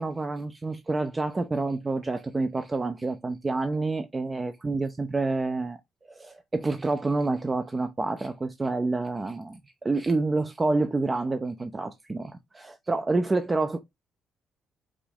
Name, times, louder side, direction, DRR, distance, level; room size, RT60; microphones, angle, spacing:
voice 1, 0.0-5.8 6.1-13.8, right 3 dB, 25° right, 0.6 m, -28 dB
5.0 x 2.6 x 3.5 m
cardioid pair, 90°, 0 cm